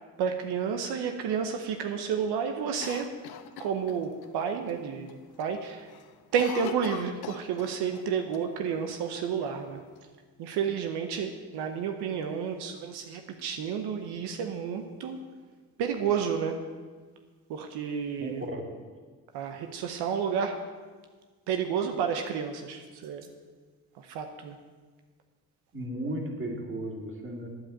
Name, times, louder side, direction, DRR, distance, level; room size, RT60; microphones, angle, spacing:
voice 1, 0.2-3.1 3.6-5.1 5.4-5.9 6.3-9.8 10.4-15.2 15.8-16.6 17.5-18.4 19.3-20.6 21.5-23.3 24.0-24.6, right 7 dB, 90° right, 5 dB, 0.9 m, -31 dB
Cough, 2.8-4.3 4.7-4.8 5.1-5.5 5.8-8.1 8.3-8.4 9.2-10.0, left 8 dB, 75° left, 0.8 m, -41 dB
voice 2, 18.2-18.7 25.7-27.5, right 1 dB, 30° right, 0 dB, 2.6 m, -35 dB
9.0 x 7.8 x 8.4 m, 1.5 s
cardioid pair, 75°, 39 cm